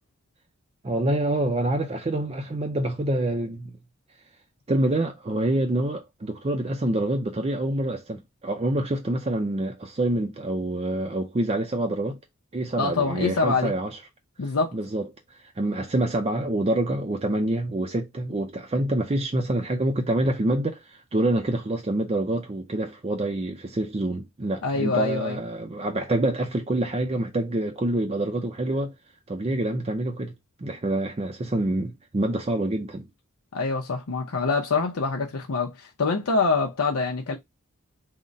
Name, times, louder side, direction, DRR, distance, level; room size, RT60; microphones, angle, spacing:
voice 1, 0.8-3.7 4.7-12.2 12.5-14.0 14.7-15.1 15.6-28.9 29.3-30.3 30.6-33.0, right 1 dB, 30° right, 0.5 m, -26 dB
voice 2, 12.8-13.7 14.4-14.7 24.6-25.4 33.5-37.4, left 4 dB, 85° left, 0.7 m, -25 dB
3.8 x 2.1 x 3.9 m
head